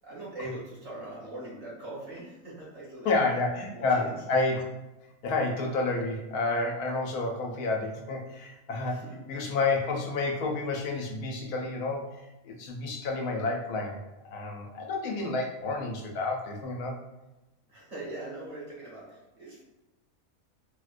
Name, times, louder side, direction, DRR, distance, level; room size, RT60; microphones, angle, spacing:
voice 1, 0.0-3.1 3.7-4.2 8.8-9.2 17.7-19.6, right 1 dB, 50° right, -6 dB, 1.4 m, -41 dB
voice 2, 3.0-4.6 5.2-9.0 9.3-14.0 14.3-16.9, left 3 dB, 90° left, 1 dB, 1.1 m, -30 dB
4.2 x 2.1 x 2.5 m, 1.0 s
omnidirectional pair, 1.6 m